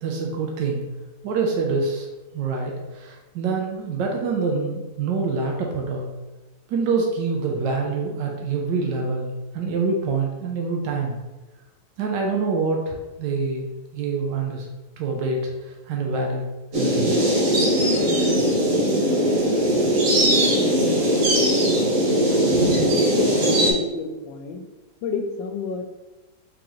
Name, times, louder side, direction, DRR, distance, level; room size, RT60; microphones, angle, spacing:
voice 1, 0.0-0.8 1.2-2.1 2.3-6.1 6.7-9.3 9.5-11.2 12.0-14.7 15.0-16.5 16.7-17.1, right 4 dB, 85° right, 0 dB, 1.3 m, -26 dB
sound 1, 16.7-23.7, equal, 55° right, 1.3 m, -20 dB
voice 2, 22.7-24.6 25.0-25.8, left 4 dB, 85° left, 5 dB, 1.3 m, -30 dB
3.8 x 3.8 x 3.0 m, 1.1 s
omnidirectional pair, 1.9 m